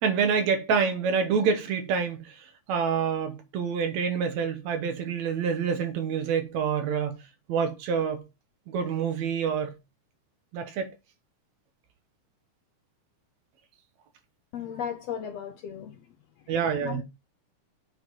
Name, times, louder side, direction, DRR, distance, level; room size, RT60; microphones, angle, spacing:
voice 1, 0.0-7.2 7.5-8.2 8.7-9.7 10.5-10.9 16.5-17.0, right 6 dB, 70° right, 2.1 m, -27 dB
voice 2, 14.5-16.5 16.8-17.0, left 8 dB, 75° left, 1.5 m, -36 dB
8.0 x 4.0 x 4.4 m
omnidirectional pair, 3.6 m